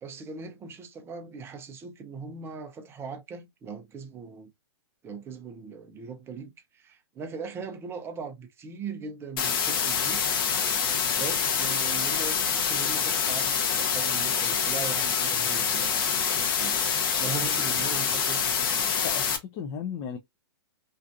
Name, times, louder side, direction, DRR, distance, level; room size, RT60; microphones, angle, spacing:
voice 1, 0.0-4.5 5.0-10.2 11.0-19.0, right 5 dB, 15° right, 0.6 m, -40 dB
sound 1, 9.4-19.4, left 7 dB, 55° left, 0.8 m, -26 dB
voice 2, 19.0-20.2, left 7 dB, 30° left, 0.4 m, -35 dB
2.5 x 2.4 x 2.5 m
hypercardioid pair, 130°, 14 cm